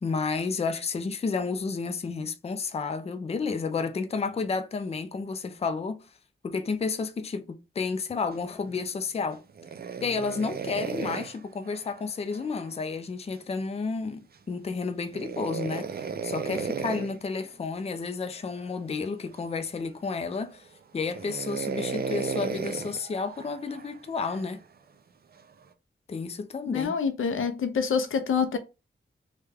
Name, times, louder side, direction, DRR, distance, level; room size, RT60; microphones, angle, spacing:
voice 1, 0.0-6.1 6.4-9.4 10.0-15.9 16.2-20.6 20.9-24.6 26.1-27.0, left 4 dB, 30° left, 0.4 m, -31 dB
sound 1, 9.5-12.8 15.1-17.2 18.3-18.8 19.3-19.4 20.1-20.6 21.1-24.5 25.4-25.7, right 6 dB, 50° right, 0.4 m, -35 dB
voice 2, 26.7-28.6, left 6 dB, 90° left, 0.5 m, -26 dB
3.2 x 2.2 x 3.3 m
wide cardioid pair, 85°, 21 cm